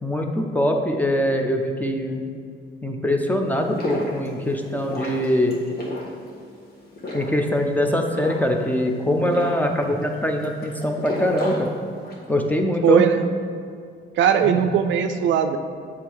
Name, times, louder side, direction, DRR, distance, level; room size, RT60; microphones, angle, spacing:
voice 1, 0.0-2.2 2.8-5.6 7.1-11.7 12.3-13.0 14.4-14.7, left 1 dB, 10° left, 3 dB, 0.7 m, -23 dB
sound 1, 3.5-12.3, left 1 dB, 50° left, 1.6 m, -34 dB
voice 2, 12.8-13.4 14.2-15.6, right 8 dB, 70° right, 8 dB, 0.4 m, -19 dB
7.4 x 3.5 x 4.7 m, 2.2 s
cardioid pair, 90°, 20 cm